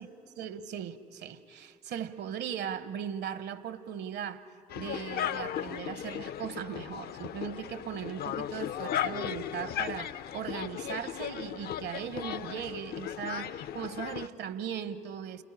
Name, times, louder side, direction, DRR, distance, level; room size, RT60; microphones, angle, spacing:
voice 1, 0.4-4.5 4.7-15.4, right 8 dB, 60° right, 15 dB, 1.3 m, -38 dB
sound 1, 4.7-14.3, left 11 dB, 55° left, 0.7 m, -36 dB
29.5 x 19.0 x 10.0 m, 2.4 s
figure-of-eight pair, 50°, 20 cm